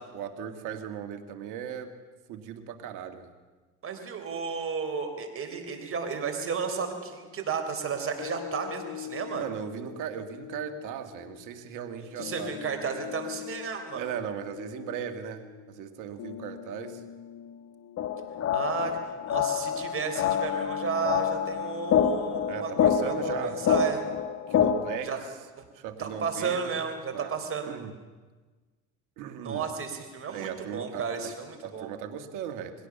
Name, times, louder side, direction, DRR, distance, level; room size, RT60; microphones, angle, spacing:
voice 1, 0.1-1.9 2.3-3.3 9.3-12.5 13.9-17.0 22.5-23.6 24.5-25.1 25.7-26.8 27.1-27.3 27.7-27.9 29.2-29.7 30.3-31.3 31.6-32.9, right 8 dB, 70° right, 7 dB, 2.1 m, -37 dB
voice 2, 3.8-9.4 12.2-14.1 18.5-18.9 19.3-24.0 25.0-25.2 26.0-27.7 29.4-31.9, right 5 dB, 40° right, 6 dB, 4.0 m, -33 dB
sound 1, 8.2-24.2, left 9 dB, 70° left, 1.4 m, -43 dB
sound 2, 18.0-25.0, left 8 dB, 50° left, 1.7 m, -27 dB
21.5 x 17.0 x 7.1 m, 1.3 s
supercardioid pair, 85°, 33 cm